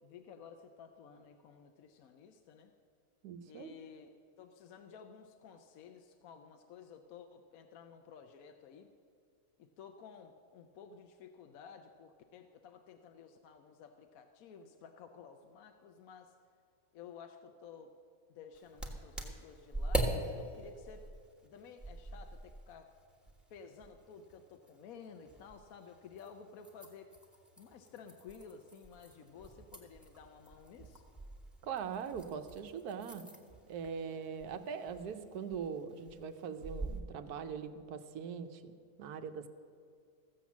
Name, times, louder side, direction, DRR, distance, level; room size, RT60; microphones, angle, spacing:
voice 1, 0.0-2.7 3.4-4.1 4.4-8.9 9.6-16.4 16.9-17.9 18.3-21.0 21.4-22.9 23.5-27.1 27.6-31.0, left 6 dB, 70° left, 6 dB, 1.1 m, -53 dB
voice 2, 3.2-3.7 31.6-33.3 33.6-38.7 39.0-39.5, right 6 dB, 80° right, 9 dB, 1.3 m, -41 dB
sound 1, 18.5-37.0, right 1 dB, ahead, 1.2 m, -43 dB
15.0 x 7.6 x 7.1 m, 2.3 s
omnidirectional pair, 1.6 m